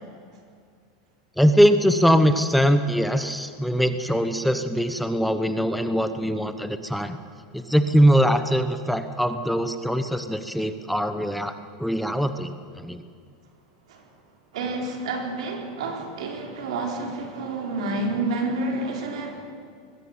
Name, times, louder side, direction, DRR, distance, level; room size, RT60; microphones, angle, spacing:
voice 1, 1.4-7.2 7.5-11.5 11.8-13.0, equal, ahead, 9 dB, 1.0 m, -22 dB
voice 2, 14.5-19.4, right 2 dB, 85° right, 2 dB, 4.5 m, -29 dB
21.0 x 15.0 x 8.9 m, 2.2 s
supercardioid pair, 145°, 3 cm